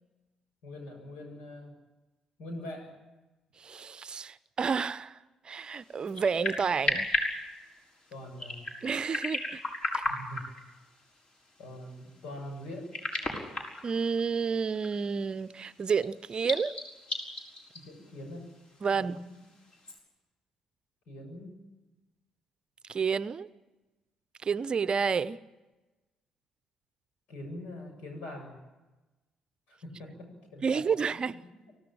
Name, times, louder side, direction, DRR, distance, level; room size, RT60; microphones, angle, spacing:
voice 1, 0.6-1.7 2.4-3.0 8.1-8.6 10.0-10.5 11.6-12.9 17.7-18.5 18.9-19.5 21.1-21.6 27.3-28.6 29.7-30.9 31.3-31.7, left 1 dB, 65° left, 4 dB, 7.3 m, -43 dB
voice 2, 3.6-5.2 5.4-7.1 8.8-9.6 9.9-10.0 13.8-16.7 18.8-19.2 22.9-23.5 24.4-25.4 30.6-31.4, right 5 dB, 40° right, 17 dB, 0.8 m, -30 dB
sound 1, 5.5-20.0, left 2 dB, 40° left, 6.3 m, -37 dB
25.0 x 16.5 x 8.9 m, 1.1 s
figure-of-eight pair, 45°, 2 cm